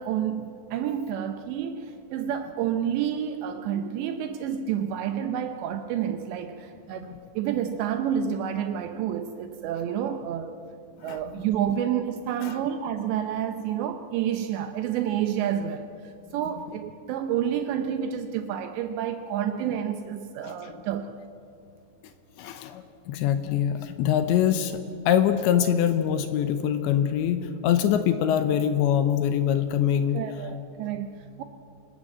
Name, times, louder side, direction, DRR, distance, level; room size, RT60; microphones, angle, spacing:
voice 1, 0.0-10.6 11.0-21.1 30.1-31.4, right 9 dB, 80° right, 8 dB, 2.6 m, -29 dB
voice 2, 20.4-20.7 22.4-24.8 25.1-30.2, left 9 dB, 80° left, 9 dB, 2.7 m, -24 dB
26.0 x 19.0 x 7.5 m, 2.6 s
omnidirectional pair, 5.9 m